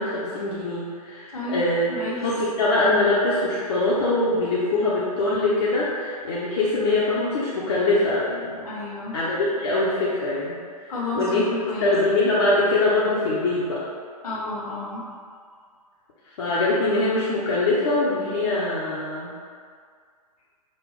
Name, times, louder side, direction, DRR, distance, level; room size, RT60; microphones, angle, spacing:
voice 1, 0.0-1.9 2.2-8.7 9.1-10.5 10.8-11.4 11.8-13.9 16.4-19.3, left 2 dB, 45° left, -8 dB, 0.7 m, -23 dB
voice 2, 1.3-2.3 8.6-9.2 10.9-11.9 14.2-15.0, left 2 dB, 65° left, -5 dB, 1.3 m, -31 dB
5.3 x 2.5 x 3.3 m, 2.1 s
figure-of-eight pair, 115°, 20 cm